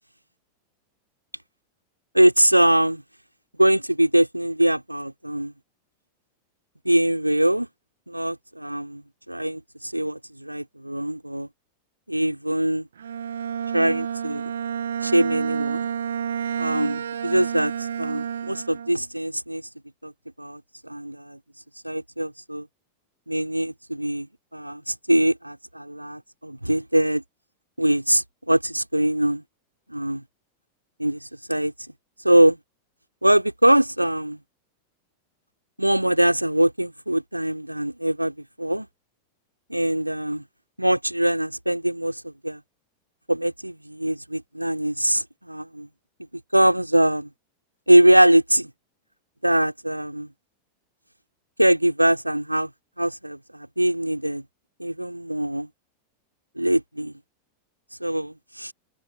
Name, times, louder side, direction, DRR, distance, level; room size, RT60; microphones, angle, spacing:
voice 1, 2.1-3.0 3.6-5.5 6.8-7.7 8.1-11.5 12.1-12.9 13.7-14.5 15.0-15.9 16.6-19.7 20.0-20.1 20.4-21.4 21.8-22.7 23.3-27.2 27.8-29.4 29.9-30.2 31.0-31.7 32.2-32.6 33.2-34.4 35.8-38.9 39.7-40.4 40.8-42.6 43.3-45.9 46.5-47.3 47.9-48.7 49.4-50.3 51.6-52.7 53.0-54.4 54.8-55.7 56.6-57.1 58.0-58.7, right 1 dB, 90° right, 3.3 m, -22 dB
Bowed string instrument, 13.0-19.0, right 8 dB, 65° right, 0.8 m, -29 dB
figure-of-eight pair, 90°, 0 cm